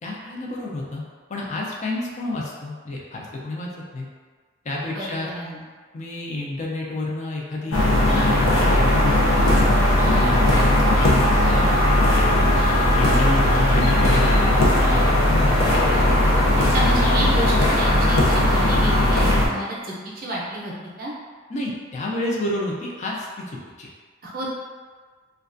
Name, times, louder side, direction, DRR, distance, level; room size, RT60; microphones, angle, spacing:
voice 1, 0.0-1.0 1.3-4.1 4.7-5.3 5.9-7.8 8.3-9.8 10.1-11.7 12.3-12.5 13.0-15.6 16.0-16.5 21.5-23.9, left 2 dB, 35° left, -3 dB, 0.4 m, -30 dB
voice 2, 4.9-5.6 16.7-21.1 24.2-24.5, right 1 dB, 45° right, -5 dB, 0.5 m, -30 dB
sound 1, 7.7-19.5, left 1 dB, 90° left, 0.5 m, -18 dB
2.3 x 2.2 x 2.4 m, 1.5 s
head